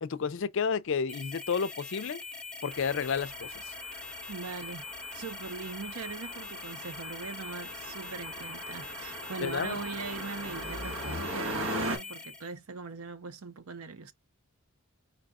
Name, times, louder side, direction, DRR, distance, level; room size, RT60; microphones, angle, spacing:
voice 1, 0.0-2.2 2.6-3.7 9.4-9.8, left 6 dB, 60° left, 0.5 m, -31 dB
sound 1, 1.1-12.5, left 3 dB, 5° left, 0.6 m, -43 dB
sound 2, 2.7-12.0, right 1 dB, 60° right, 1.5 m, -40 dB
voice 2, 4.3-4.9 5.1-14.1, right 4 dB, 80° right, 0.7 m, -41 dB
4.7 x 2.3 x 3.6 m
head